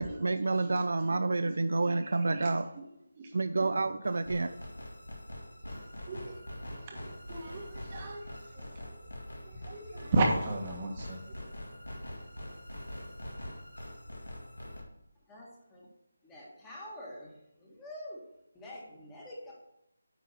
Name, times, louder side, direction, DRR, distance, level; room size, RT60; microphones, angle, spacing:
voice 1, 0.0-2.7 3.3-4.5, right 3 dB, 65° right, 11 dB, 0.4 m, -29 dB
sound 1, 4.0-14.8, left 1 dB, 85° left, 1.9 m, -44 dB
voice 2, 6.1-6.4 6.9-7.0 7.3-8.2 8.5-9.0 9.5-11.2, right 2 dB, 30° right, 1 dB, 1.5 m, -33 dB
voice 3, 15.3-15.9 16.2-18.2 18.5-19.5, left 1 dB, 10° left, -4 dB, 1.7 m, -46 dB
9.3 x 3.7 x 5.7 m, 0.83 s
figure-of-eight pair, 160°, 0 cm